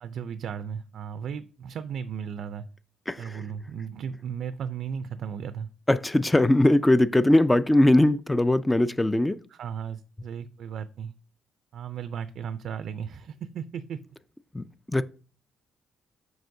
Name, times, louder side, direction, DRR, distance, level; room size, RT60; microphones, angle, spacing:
voice 1, 0.0-2.7 3.2-5.7 9.5-11.1 11.7-14.0, right 7 dB, 70° right, 0.4 m, -35 dB
voice 2, 3.1-3.4 5.9-9.4 14.5-15.0, left 1 dB, 10° left, 0.4 m, -21 dB
7.7 x 5.0 x 2.6 m
cardioid pair, 90°, 0 cm